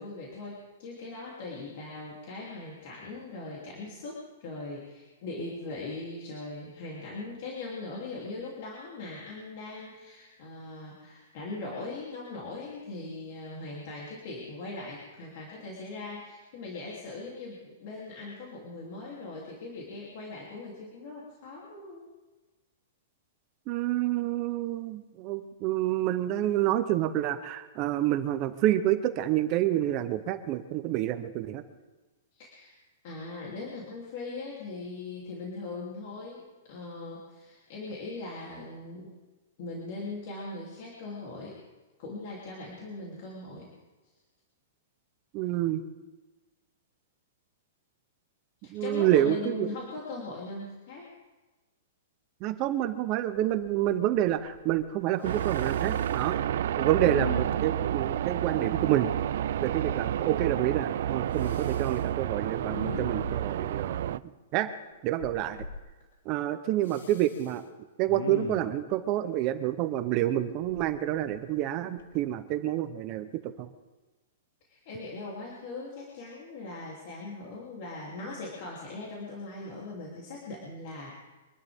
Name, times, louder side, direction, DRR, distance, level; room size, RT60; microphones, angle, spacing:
voice 1, 0.0-22.0 32.3-32.7 33.0-36.4 36.7-39.1 39.6-41.6 42.0-43.7 48.6-51.1 74.7-81.1, left 3 dB, 40° left, -4 dB, 3.0 m, -40 dB
voice 2, 23.7-31.6 45.3-45.8 48.7-49.7 52.4-59.1 59.6-64.7 65.0-65.7 66.3-67.6 68.0-73.7, right 13 dB, 25° right, 10 dB, 0.7 m, -28 dB
Respiratory sounds, 52.8-52.9 53.3-53.9 54.1-54.9 55.3-56.3 56.9-57.8 61.4-62.0 62.6-63.6 65.2-65.8 66.8-67.5 68.1-68.8 70.6-71.6 72.0-72.2, left 5 dB, 85° left, 1.5 m, -41 dB
sound 1, 55.2-64.2, right 10 dB, 55° right, 0.4 m, -30 dB
24.0 x 12.5 x 3.6 m, 1.2 s
hypercardioid pair, 170°, 0 cm